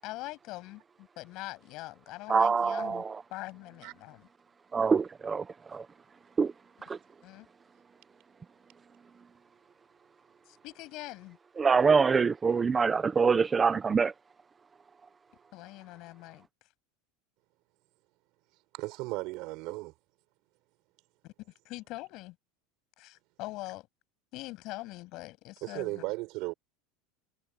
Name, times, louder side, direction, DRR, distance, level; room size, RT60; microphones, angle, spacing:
voice 1, 0.0-3.0 3.3-4.3 7.2-7.5 10.5-11.4 15.5-16.5 21.2-22.4 23.0-23.9 24.3-26.1, left 20 dB, 45° left, 7.1 m, -43 dB
voice 2, 2.3-3.1 4.7-5.9 6.4-6.5 6.8-7.0 11.6-14.1, right 5 dB, 15° right, 0.6 m, -25 dB
voice 3, 18.7-19.9 25.6-26.5, right 22 dB, 50° right, 4.4 m, -35 dB
supercardioid pair, 170°, 0 cm